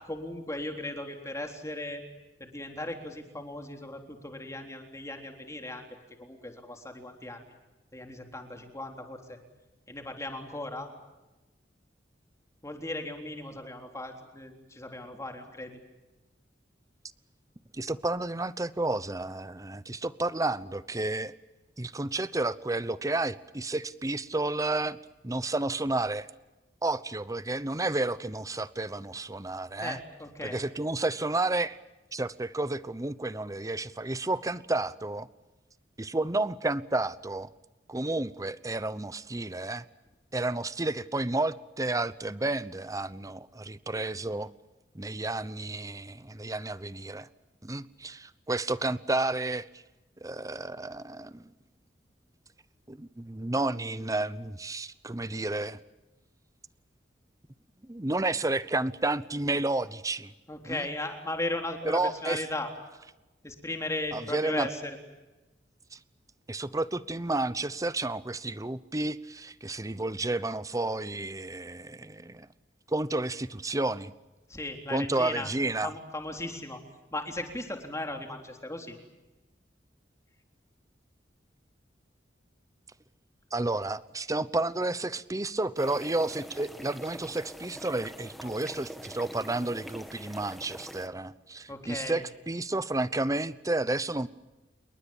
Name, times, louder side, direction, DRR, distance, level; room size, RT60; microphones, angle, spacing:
voice 1, 0.1-2.0 2.4-5.9 6.2-7.4 7.9-9.4 9.9-10.9 12.6-15.8 29.8-30.6 60.5-62.7 63.4-65.0 74.5-75.5 75.8-76.8 77.1-79.0 91.7-92.2, left 1 dB, 15° left, 4 dB, 3.7 m, -37 dB
voice 2, 17.7-21.3 21.8-25.0 25.2-26.3 26.8-30.0 30.4-31.8 32.1-35.3 36.0-37.5 37.9-39.8 40.3-44.5 44.9-47.3 47.6-49.7 50.2-51.5 52.9-55.8 57.8-60.3 60.6-60.9 61.8-62.4 64.1-64.7 65.9-66.0 66.5-72.5 72.9-74.1 74.9-76.0 83.5-94.3, right 2 dB, 20° right, 16 dB, 0.9 m, -31 dB
sound 1, 85.8-91.1, equal, ahead, 1.9 m, -44 dB
28.5 x 22.5 x 7.2 m, 1.1 s
head